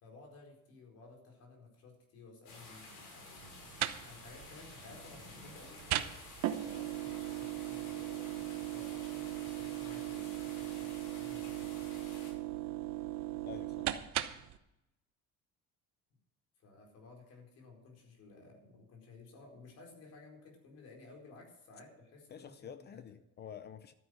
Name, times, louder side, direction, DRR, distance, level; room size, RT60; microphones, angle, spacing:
voice 1, 0.0-6.3 6.5-11.7 16.6-23.0, left 3 dB, 50° left, 1 dB, 4.4 m, -56 dB
sound 1, 2.5-12.3, left 3 dB, 75° left, 6.0 m, -52 dB
sound 2, 3.4-14.6, right 14 dB, 60° right, 0.9 m, -39 dB
voice 2, 13.4-13.9 22.3-23.9, left 8 dB, 30° left, 12 dB, 0.6 m, -49 dB
13.0 x 9.7 x 6.3 m, 0.86 s
cardioid pair, 175°, 32 cm